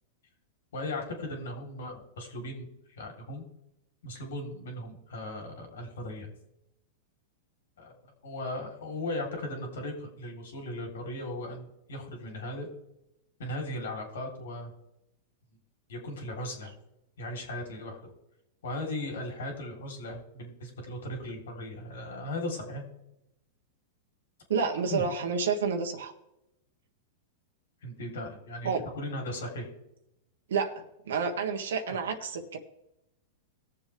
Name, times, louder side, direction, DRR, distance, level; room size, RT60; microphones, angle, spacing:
voice 1, 0.7-3.4 4.0-6.3 7.8-7.9 8.2-12.7 13.4-14.7 15.9-16.7 17.2-18.0 18.6-22.8 24.9-25.0 27.8-29.7 31.9-32.0, left 1 dB, 85° left, 2 dB, 3.6 m, -37 dB
voice 2, 24.5-26.1 28.6-28.8 30.5-32.6, right 5 dB, 85° right, 4 dB, 1.5 m, -29 dB
20.0 x 7.2 x 3.5 m, 0.87 s
supercardioid pair, 140°, 0 cm